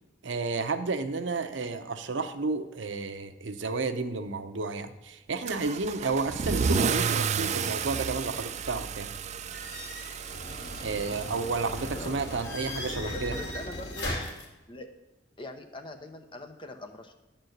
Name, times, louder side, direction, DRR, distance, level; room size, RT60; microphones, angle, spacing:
voice 1, 0.2-9.1 10.8-13.4, right 3 dB, 85° right, 9 dB, 0.7 m, -31 dB
Car / Engine starting / Accelerating revving vroom, 5.5-12.8, right 6 dB, 40° right, 0.4 m, -32 dB
sound 1, 9.5-14.4, left 1 dB, 70° left, 2.5 m, -37 dB
voice 2, 13.1-14.2 14.7-14.9 15.4-17.1, left 1 dB, 25° left, 5 dB, 0.9 m, -42 dB
10.5 x 4.4 x 7.9 m, 1.1 s
head